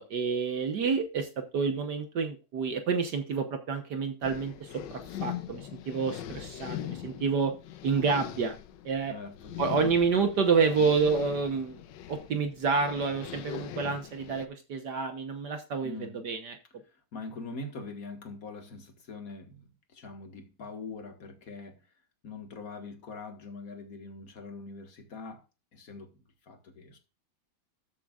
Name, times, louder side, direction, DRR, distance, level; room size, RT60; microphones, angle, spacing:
voice 1, 0.0-7.5 7.8-8.6 8.8-9.1 9.6-11.8 12.1-16.6, right 5 dB, 60° right, 1.5 m, -29 dB
sound 1, 4.2-14.5, left 11 dB, 70° left, 1.3 m, -41 dB
voice 2, 9.1-9.6 15.8-16.2 16.9-21.8 22.2-25.4 25.7-27.0, left 3 dB, 45° left, 1.9 m, -43 dB
13.5 x 7.6 x 2.4 m
omnidirectional pair, 2.2 m